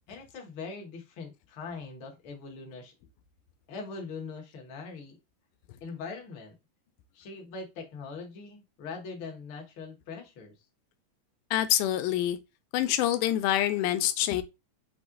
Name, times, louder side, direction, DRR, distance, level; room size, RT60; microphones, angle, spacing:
voice 1, 0.1-2.9 3.7-5.2 5.8-6.5 7.1-10.5, left 4 dB, 50° left, 1.7 m, -41 dB
voice 2, 11.5-12.4 12.7-14.4, left 12 dB, 90° left, 2.1 m, -26 dB
5.8 x 2.1 x 3.8 m
omnidirectional pair, 3.6 m